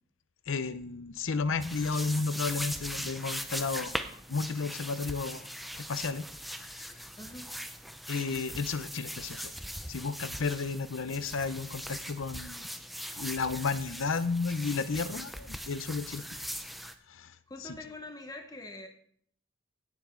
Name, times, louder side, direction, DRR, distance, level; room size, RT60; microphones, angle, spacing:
voice 1, 0.5-4.0 4.3-5.5 5.9-6.3 6.7-6.9 8.1-9.5 9.9-12.7 13.2-16.2 17.1-17.4, left 4 dB, 65° left, 14 dB, 0.6 m, -32 dB
sound 1, 1.6-16.9, equal, ahead, 0.5 m, -40 dB
voice 2, 7.2-7.6 17.5-18.9, left 1 dB, 15° left, 5 dB, 1.0 m, -44 dB
16.5 x 7.3 x 3.8 m, 0.63 s
head